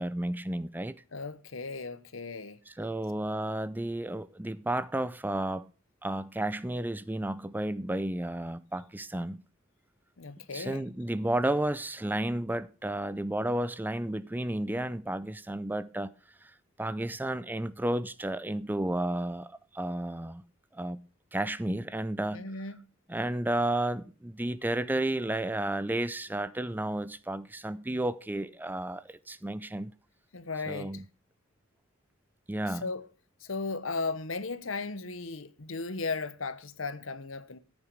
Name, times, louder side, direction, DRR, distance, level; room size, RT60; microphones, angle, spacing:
voice 1, 0.0-1.0 2.7-5.6 6.0-9.4 10.5-16.1 16.8-20.4 20.7-21.0 21.3-22.5 23.1-29.9 30.7-31.0 32.5-32.8, right 1 dB, 10° right, 0.5 m, -32 dB
voice 2, 1.1-2.6 10.2-10.8 22.3-22.8 30.3-31.0 32.7-33.0 33.4-37.6, left 3 dB, 80° left, 1.1 m, -36 dB
14.0 x 8.8 x 4.6 m
head